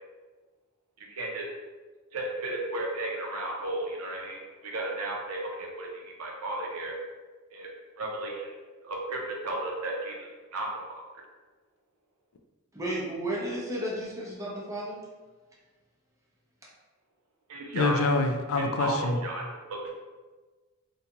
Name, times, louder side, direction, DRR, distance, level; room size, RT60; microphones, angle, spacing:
voice 1, 1.0-1.5 2.1-7.0 7.5-7.7 8.0-8.5 8.8-10.7 17.5-18.0 18.6-19.8, right 2 dB, 85° right, 0 dB, 0.6 m, -34 dB
voice 2, 12.7-15.0, right 1 dB, 15° right, -4 dB, 0.5 m, -33 dB
voice 3, 17.7-19.2, left 3 dB, 65° left, 6 dB, 0.3 m, -26 dB
2.5 x 2.2 x 2.8 m, 1.3 s
head